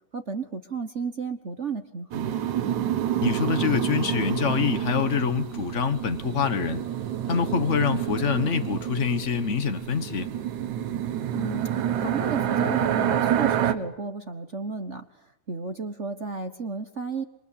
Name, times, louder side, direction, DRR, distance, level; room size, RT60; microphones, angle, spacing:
voice 1, 0.1-2.4 11.3-15.0 15.5-17.2, right 4 dB, 55° right, 7 dB, 0.8 m, -33 dB
sound 1, 2.1-13.7, right 10 dB, 80° right, 2.8 m, -28 dB
voice 2, 3.2-6.8 7.3-10.3, left 7 dB, 60° left, 10 dB, 0.7 m, -25 dB
27.5 x 24.0 x 8.5 m, 0.82 s
omnidirectional pair, 3.3 m